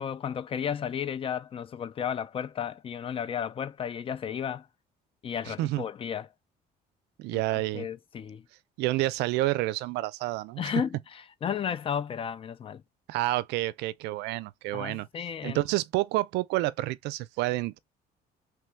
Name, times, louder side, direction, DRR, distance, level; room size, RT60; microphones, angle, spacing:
voice 1, 0.0-4.7 5.2-6.3 7.3-8.4 10.6-12.8 14.7-15.6, left 8 dB, 35° left, 0.4 m, -33 dB
voice 2, 5.5-5.8 7.2-7.9 8.8-10.6 13.1-15.1 15.4-17.8, right 17 dB, 85° right, 0.4 m, -29 dB
3.1 x 2.2 x 3.2 m
cardioid pair, 110°, 17 cm